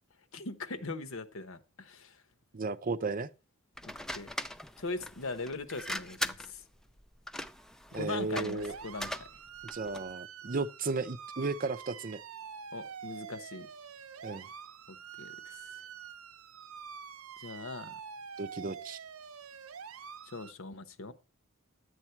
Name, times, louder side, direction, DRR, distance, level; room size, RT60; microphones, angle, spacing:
voice 1, 0.3-2.2 3.8-4.3 4.8-6.6 7.9-9.3 12.7-13.7 14.9-15.7 17.4-18.0 20.3-21.1, left 3 dB, 65° left, 1.0 m, -40 dB
voice 2, 2.5-3.3 7.9-8.7 9.7-12.2 14.2-14.5 18.4-19.0, right 3 dB, 40° right, 0.6 m, -34 dB
sound 1, 3.8-10.1, left 1 dB, ahead, 0.4 m, -40 dB
sound 2, 8.6-20.5, right 7 dB, 80° right, 0.7 m, -46 dB
11.0 x 8.2 x 4.5 m
head